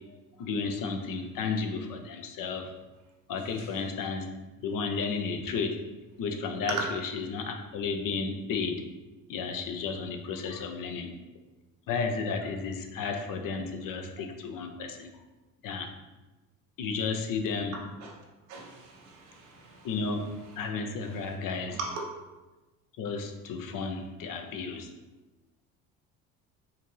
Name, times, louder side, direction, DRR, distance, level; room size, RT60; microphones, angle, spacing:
voice 1, 0.1-2.7 3.3-4.3 4.6-5.8 6.2-8.8 9.3-11.1 11.9-15.1 15.6-15.9 16.8-17.7 19.8-20.2 20.6-21.8 23.0-24.9, left 4 dB, 50° left, 5 dB, 0.7 m, -33 dB
voice 2, 17.7-18.1 18.5-19.9 21.7-22.0, right 3 dB, 80° right, -2 dB, 1.0 m, -37 dB
4.9 x 2.6 x 3.2 m, 1.1 s
hypercardioid pair, 60°, 42 cm